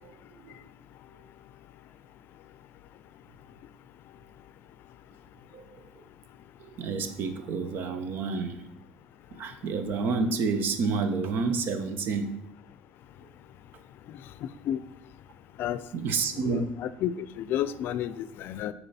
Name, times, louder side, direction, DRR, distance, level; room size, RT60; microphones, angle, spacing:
voice 1, 0.0-0.6 5.5-6.1 6.6-8.7 9.3-12.4 15.9-16.8, right 4 dB, 60° right, 9 dB, 1.0 m, -30 dB
voice 2, 16.4-18.7, left 11 dB, 65° left, 15 dB, 0.5 m, -31 dB
10.0 x 4.6 x 4.2 m, 0.85 s
cardioid pair, 125°, 4 cm